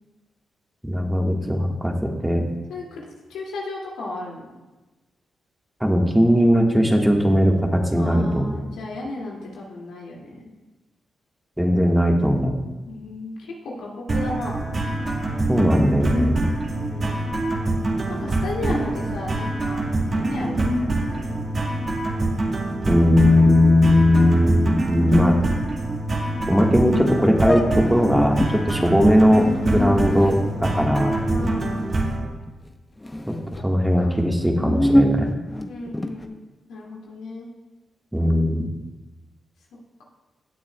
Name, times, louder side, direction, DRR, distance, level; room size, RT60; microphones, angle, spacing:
voice 1, 0.8-2.4 5.8-8.6 11.6-12.5 15.5-16.5 22.9-25.3 26.5-31.2 33.3-33.4 33.6-35.3 38.1-38.6, equal, 5° right, 1 dB, 1.6 m, -18 dB
voice 2, 2.7-4.6 8.0-10.5 12.9-14.6 16.7-17.2 18.1-21.7 28.7-29.0 31.3-31.8 33.5-33.6 34.0-34.1 35.7-36.3 36.7-37.5, left 2 dB, 90° left, -4 dB, 2.4 m, -34 dB
sound 1, 14.1-32.2, right 2 dB, 45° right, 1.8 m, -25 dB
sound 2, 26.8-26.9 27.4-28.6 29.2-32.7 33.0-33.6 34.3-36.3, left 1 dB, 20° left, 0.8 m, -26 dB
17.0 x 8.5 x 2.3 m, 1.1 s
supercardioid pair, 55°, 0 cm